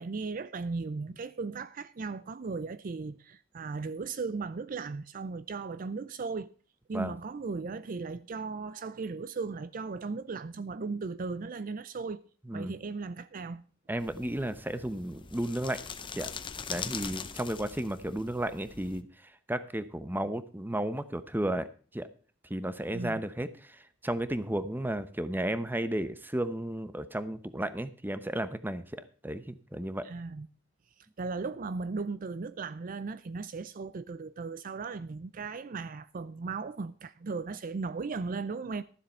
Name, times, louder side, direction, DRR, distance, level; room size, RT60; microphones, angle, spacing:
voice 1, 0.0-6.5 6.9-12.3 12.5-13.6 22.9-23.1 30.0-30.5 31.2-38.8, right 4 dB, 45° right, 0.4 m, -37 dB
voice 2, 13.9-15.8 16.2-16.3 16.7-19.1 19.5-21.7 21.9-22.1 22.5-28.9 29.2-30.1, right 1 dB, 10° right, 0.8 m, -33 dB
sound 1, 14.0-19.0, left 6 dB, 25° left, 0.8 m, -42 dB
13.0 x 7.5 x 5.5 m
head